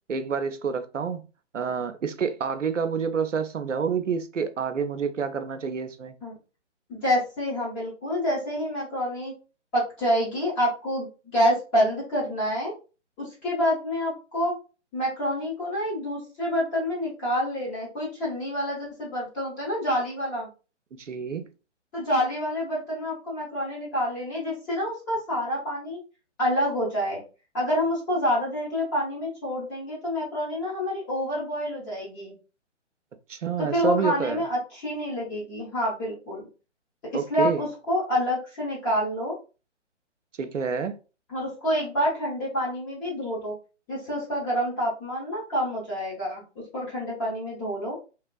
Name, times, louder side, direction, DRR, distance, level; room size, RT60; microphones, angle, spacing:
voice 1, 0.1-1.2 1.5-6.1 21.0-21.5 33.3-34.4 37.1-37.6 40.4-41.0, right 6 dB, 90° right, 0.6 m, -28 dB
voice 2, 6.9-9.3 9.7-12.7 13.2-14.5 14.9-20.5 21.9-26.0 26.4-27.2 27.5-32.3 33.6-36.5 37.1-39.3 41.3-43.5 43.9-48.0, equal, 15° left, 0.8 m, -27 dB
2.9 x 2.5 x 2.2 m
figure-of-eight pair, 140°, 36 cm